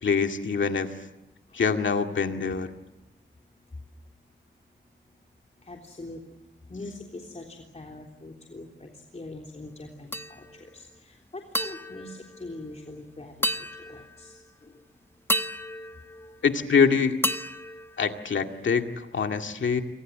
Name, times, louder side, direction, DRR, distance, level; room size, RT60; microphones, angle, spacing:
voice 1, 0.0-0.9 1.5-2.7 16.4-17.2 18.0-18.9 19.1-19.8, left 5 dB, 90° left, 5 dB, 2.1 m, -24 dB
voice 2, 5.6-6.2 6.7-10.5 10.7-14.7, left 2 dB, 35° left, 1 dB, 3.5 m, -43 dB
sound 1, 10.1-10.7 11.5-13.0 13.4-14.4 15.3-16.8 17.2-18.6, equal, 10° left, 1.4 m, -33 dB
28.5 x 25.0 x 7.6 m, 0.94 s
wide cardioid pair, 70°, 19 cm